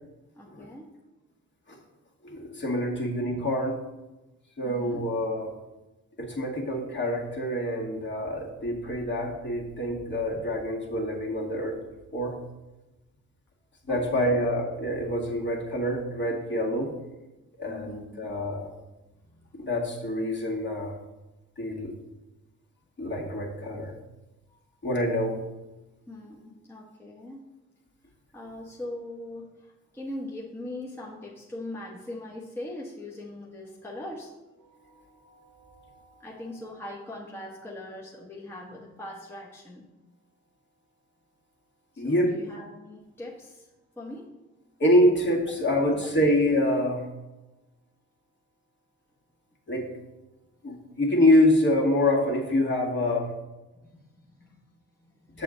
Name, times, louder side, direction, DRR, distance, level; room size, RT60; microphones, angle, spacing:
voice 1, 0.3-0.9 4.6-5.1 13.9-14.5 17.7-18.3 19.2-19.5 24.5-24.6 26.1-27.4 28.3-34.3 36.2-39.9 41.9-43.7 44.0-44.3 45.8-46.1 53.9-55.4, left 1 dB, 10° left, -4 dB, 1.2 m, -41 dB
voice 2, 2.2-3.8 4.6-5.5 6.2-11.8 12.1-12.3 13.8-16.9 17.6-18.7 19.6-20.9 21.6-21.9 23.0-24.0 24.8-25.4 35.1-36.2 42.0-42.3 44.8-47.1 49.7-49.9 50.6-53.3 55.3-55.4, left 1 dB, 40° left, -2 dB, 1.9 m, -26 dB
6.8 x 6.4 x 3.8 m, 1.1 s
cardioid pair, 90°, 30 cm